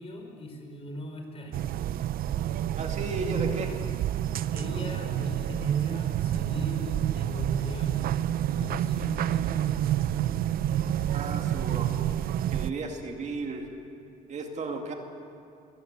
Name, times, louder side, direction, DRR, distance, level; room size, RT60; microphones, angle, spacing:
voice 1, 0.0-1.6 4.5-8.0 8.5-10.0, left 1 dB, 35° left, 3 dB, 5.0 m, -39 dB
sound 1, 1.5-12.7, right 11 dB, 60° right, 0.7 m, -28 dB
voice 2, 2.8-3.7 11.1-11.9 12.5-13.7 14.3-14.9, right 3 dB, 45° right, 3 dB, 2.4 m, -34 dB
22.5 x 19.5 x 8.1 m, 2.6 s
cardioid pair, 110°, 17 cm